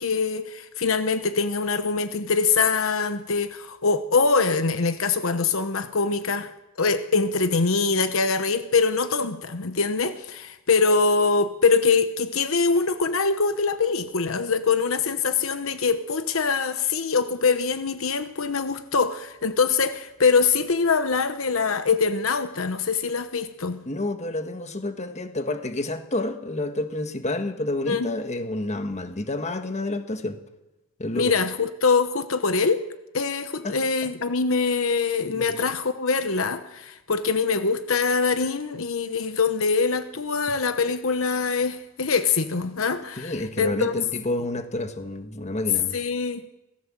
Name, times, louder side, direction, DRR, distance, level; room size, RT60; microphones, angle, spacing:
voice 1, 0.0-6.5 6.8-23.8 27.8-28.1 31.1-32.8 33.1-43.9 45.9-46.5, left 4 dB, 70° left, 1.0 m, -23 dB
voice 2, 23.8-30.4 31.0-31.3 33.6-33.8 35.3-35.6 43.2-46.0, left 2 dB, 35° left, 1.5 m, -29 dB
26.0 x 17.5 x 7.5 m
head